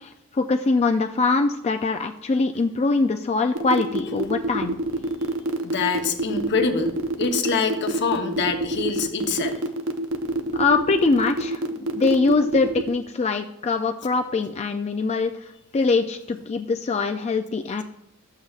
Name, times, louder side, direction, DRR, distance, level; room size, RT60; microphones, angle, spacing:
voice 1, 0.0-4.8 10.5-11.6 11.9-17.8, left 3 dB, 30° left, 6 dB, 0.3 m, -23 dB
sound 1, 3.6-12.9, right 2 dB, 65° right, 0.7 m, -26 dB
voice 2, 5.6-9.6, left 5 dB, 55° left, 4 dB, 1.0 m, -25 dB
12.5 x 8.2 x 2.4 m, 0.80 s
head